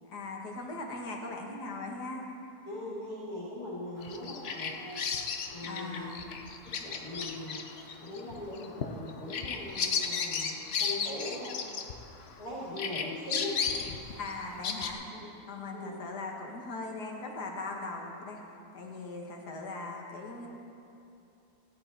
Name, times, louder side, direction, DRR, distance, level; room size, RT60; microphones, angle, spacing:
voice 1, 0.0-2.2 5.6-6.3 14.1-15.1 15.5-18.4 18.7-20.5, left 3 dB, 85° left, 0 dB, 2.1 m, -39 dB
voice 2, 2.6-5.0 5.5-6.1 6.8-7.6 8.0-11.6 12.3-13.9 15.1-15.3 15.7-16.0, left 1 dB, 70° left, -7 dB, 3.3 m, -40 dB
Bird vocalization bird call bird song, 4.0-12.4 12.8-14.9, left 6 dB, 55° left, 0.8 m, -34 dB
16.5 x 10.5 x 4.4 m, 2.7 s
omnidirectional pair, 1.7 m